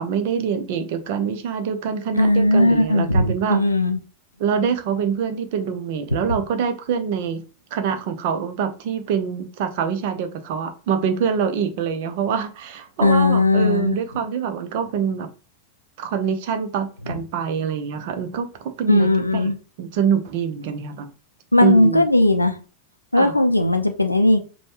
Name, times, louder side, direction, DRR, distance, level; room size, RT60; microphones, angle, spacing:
voice 1, 0.0-3.6 4.4-7.4 7.7-15.3 16.0-18.5 18.8-19.5 19.8-21.1 21.6-22.1 23.1-23.3, right 7 dB, 50° right, 0.6 m, -25 dB
voice 2, 2.2-4.0 6.3-6.4 13.0-14.0 18.9-19.6 21.5-22.6 23.1-24.4, left 2 dB, 85° left, 0.4 m, -17 dB
5.2 x 2.2 x 2.8 m
figure-of-eight pair, 90°, 0 cm